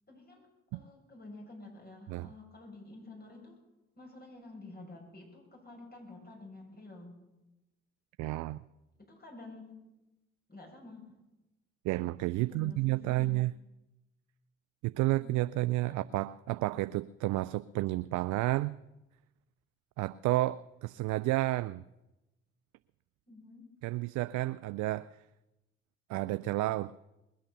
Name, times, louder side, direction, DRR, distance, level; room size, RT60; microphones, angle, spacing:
voice 1, 0.1-0.5 0.7-3.6 4.0-7.1 9.0-9.8 10.5-11.1 12.4-13.4 15.2-15.4 15.9-16.0 23.3-23.7, left 2 dB, 30° left, 0 dB, 6.9 m, -50 dB
voice 2, 8.2-8.6 11.8-13.5 14.8-18.8 20.0-21.8 23.8-25.1 26.1-27.0, right 18 dB, 70° right, 15 dB, 0.5 m, -31 dB
20.5 x 8.8 x 6.9 m, 0.99 s
hypercardioid pair, 45°, 30 cm